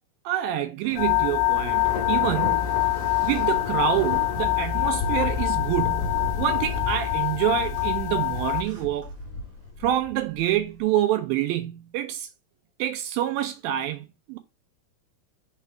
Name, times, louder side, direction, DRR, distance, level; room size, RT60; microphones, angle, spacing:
voice 1, 0.3-2.8 3.2-9.1 9.8-12.3 12.8-14.4, right 13 dB, 80° right, 2.2 m, -27 dB
Thunder, 0.8-10.7, left 4 dB, 45° left, 2.0 m, -34 dB
sound 1, 1.0-8.6, left 16 dB, 85° left, 2.5 m, -25 dB
Car, 1.4-9.7, right 1 dB, 55° right, 1.8 m, -47 dB
5.8 x 3.4 x 5.6 m
omnidirectional pair, 4.4 m